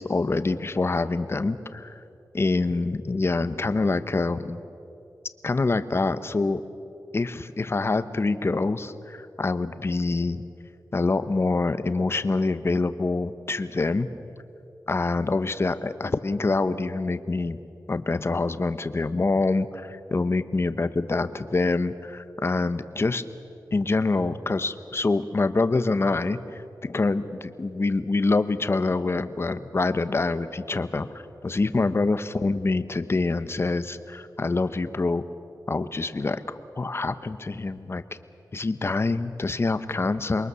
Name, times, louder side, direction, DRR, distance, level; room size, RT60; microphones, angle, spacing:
voice 1, 0.0-2.0 2.3-4.6 5.4-6.6 7.1-10.4 10.9-14.1 14.9-17.6 17.9-23.2 23.7-35.2 35.7-38.0 38.5-40.5, left 3 dB, 35° left, 12 dB, 1.0 m, -26 dB
27.5 x 22.5 x 7.0 m, 2.7 s
wide cardioid pair, 115°, 7 cm